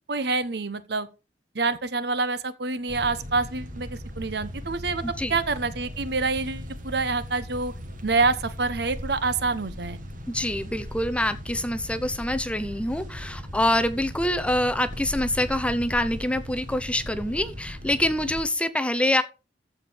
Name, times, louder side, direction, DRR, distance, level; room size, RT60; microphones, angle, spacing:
voice 1, 0.1-1.1 1.5-5.0 5.3-7.7 8.0-10.0, right 3 dB, 65° right, 1.1 m, -27 dB
sound 1, 2.9-18.4, equal, 50° right, 2.4 m, -38 dB
voice 2, 5.0-5.4 10.3-19.2, left 1 dB, 5° left, 0.8 m, -25 dB
14.5 x 5.2 x 5.2 m
head